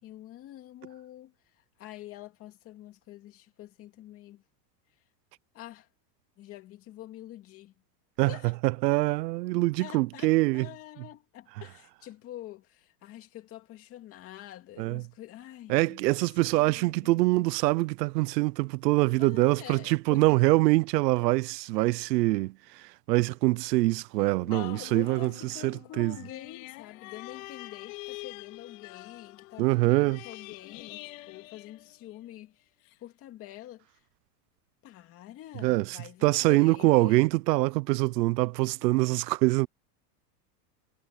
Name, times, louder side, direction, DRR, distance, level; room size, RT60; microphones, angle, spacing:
voice 1, 0.0-1.3 1.8-4.4 5.5-5.9 6.4-7.7 8.3-8.5 9.8-16.1 16.4-17.3 19.2-20.2 24.4-32.7 33.0-34.0 34.8-37.3, left 14 dB, 30° left, 2.5 m, -46 dB
voice 2, 8.6-10.7 14.8-15.0 15.7-26.2 29.6-30.2 35.6-39.7, right 20 dB, 90° right, 0.7 m, -24 dB
sound 1, 24.5-32.4 32.9-33.0, left 22 dB, 55° left, 4.3 m, -45 dB
supercardioid pair, 170°, 48 cm